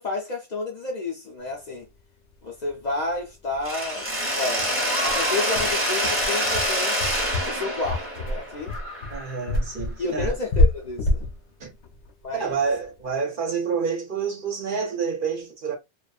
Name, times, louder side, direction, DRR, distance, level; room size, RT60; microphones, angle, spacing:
voice 1, 0.0-1.9 2.4-4.1 4.3-7.0 7.4-8.8 10.0-11.2 12.2-12.6, left 2 dB, 50° left, 0.6 m, -31 dB
sound 1, 2.7-2.8 3.1-3.2 3.5-3.7 4.0-4.1 4.6-13.0, left 2 dB, 75° left, 0.9 m, -26 dB
Mechanisms, 3.6-9.5, equal, 15° right, 0.6 m, -26 dB
voice 2, 9.1-10.3 11.6-11.7 12.3-15.7, right 5 dB, 55° right, 0.8 m, -28 dB
2.5 x 2.3 x 2.3 m
omnidirectional pair, 1.2 m